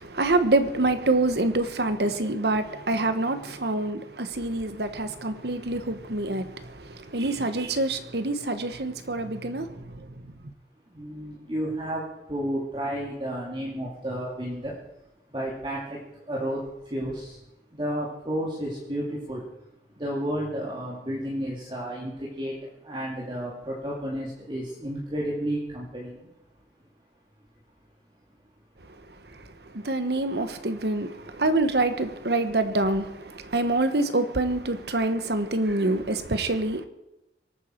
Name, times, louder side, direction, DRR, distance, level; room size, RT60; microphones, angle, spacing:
voice 1, 0.0-10.1 10.4-10.5 29.7-36.9, right 2 dB, 65° right, 1.2 m, -26 dB
voice 2, 10.9-14.8 15.3-17.4 17.7-19.5 20.0-26.3, equal, 25° right, 2.4 m, -32 dB
23.5 x 9.4 x 4.5 m
head